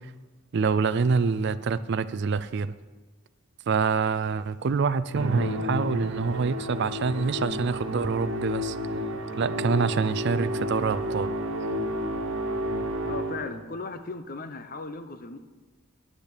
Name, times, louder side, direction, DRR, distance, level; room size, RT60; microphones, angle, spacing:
voice 1, 0.5-2.7 3.7-8.8 9.4-11.3, right 5 dB, 50° right, 0.4 m, -26 dB
Musical instrument, 5.1-13.7, equal, 70° right, 1.4 m, -31 dB
voice 2, 13.0-15.4, left 3 dB, 40° left, 0.7 m, -37 dB
9.8 x 6.9 x 8.2 m
head